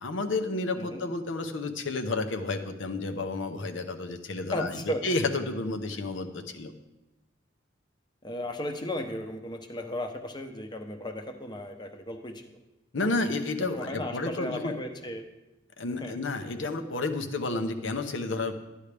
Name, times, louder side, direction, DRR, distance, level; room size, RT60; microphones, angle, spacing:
voice 1, 0.0-4.8 5.0-6.7 12.9-14.7 15.8-18.5, left 3 dB, 75° left, 7 dB, 0.9 m, -31 dB
voice 2, 4.5-5.1 8.2-12.4 13.7-15.2 15.9-16.2, left 1 dB, 25° left, 5 dB, 0.8 m, -35 dB
12.0 x 10.0 x 3.4 m, 1.0 s
head